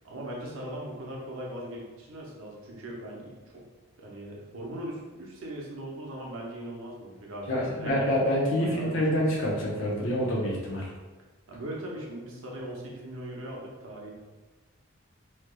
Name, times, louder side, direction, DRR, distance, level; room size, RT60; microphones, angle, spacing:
voice 1, 0.0-3.6 4.0-8.0 8.6-9.2 11.5-14.1, right 1 dB, 65° right, -2 dB, 0.7 m, -39 dB
voice 2, 7.5-10.9, equal, 65° left, -4 dB, 0.8 m, -27 dB
3.4 x 2.9 x 2.2 m, 1.2 s
head